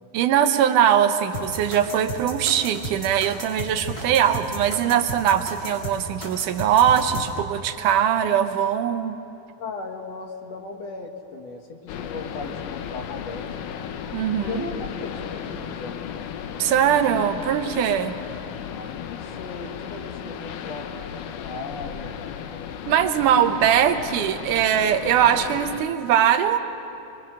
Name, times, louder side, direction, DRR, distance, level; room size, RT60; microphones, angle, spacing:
voice 1, 0.1-9.2 14.1-14.7 16.6-18.2 22.9-26.6, right 9 dB, 85° right, 8 dB, 2.5 m, -21 dB
sound 1, 1.3-7.3, equal, 25° left, 5.4 m, -33 dB
voice 2, 9.6-13.5 14.5-16.0 18.7-22.1, left 3 dB, 60° left, 3 dB, 2.5 m, -37 dB
sound 2, 11.9-25.8, left 8 dB, 90° left, 2.5 m, -35 dB
24.5 x 23.0 x 6.5 m, 2.8 s
omnidirectional pair, 3.6 m